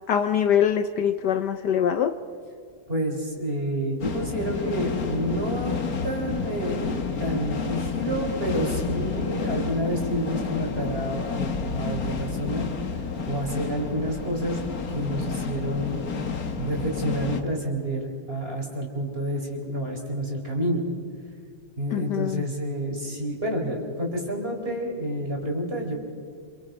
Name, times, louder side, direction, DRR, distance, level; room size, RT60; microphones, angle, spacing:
voice 1, 0.1-2.2 21.9-22.4, left 8 dB, 65° left, 1.3 m, -23 dB
voice 2, 2.9-5.8 6.0-14.6 14.9-16.0 16.6-20.9 21.8-26.0, equal, 30° right, 4.4 m, -29 dB
sound 1, 4.0-17.4, left 5 dB, 50° left, 1.9 m, -30 dB
27.5 x 27.5 x 5.2 m
omnidirectional pair, 2.1 m